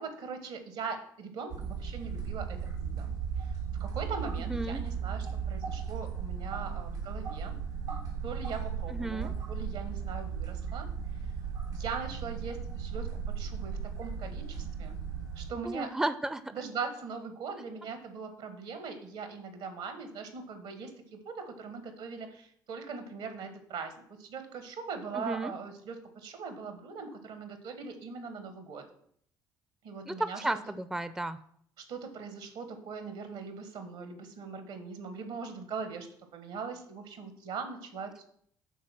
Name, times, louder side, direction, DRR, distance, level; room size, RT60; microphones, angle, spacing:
voice 1, 0.0-3.1 3.4-7.6 8.2-10.9 11.7-15.0 15.3-15.9 16.5-23.9 24.2-28.8 29.8-30.4 31.8-38.2, right 5 dB, 70° right, 7 dB, 1.6 m, -41 dB
sound 1, 1.5-15.5, right 7 dB, 85° right, 1.6 m, -36 dB
voice 2, 4.5-4.8 8.9-9.3 15.6-16.4 25.1-25.5 30.1-31.4, right 2 dB, 5° right, 12 dB, 0.5 m, -33 dB
9.3 x 4.1 x 6.0 m, 0.65 s
hypercardioid pair, 50°, 11 cm